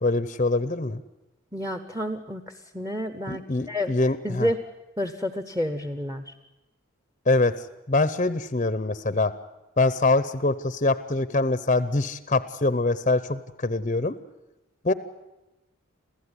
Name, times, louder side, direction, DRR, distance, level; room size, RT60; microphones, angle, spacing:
voice 1, 0.0-1.0 3.3-4.5 7.3-7.5 7.9-9.3 9.8-14.2 14.8-14.9, left 2 dB, 35° left, 14 dB, 0.7 m, -24 dB
voice 2, 1.5-2.4 2.7-3.4 3.7-3.9 4.2-4.6 5.0-6.2, equal, 10° right, 9 dB, 1.0 m, -29 dB
27.5 x 15.0 x 9.8 m, 0.97 s
head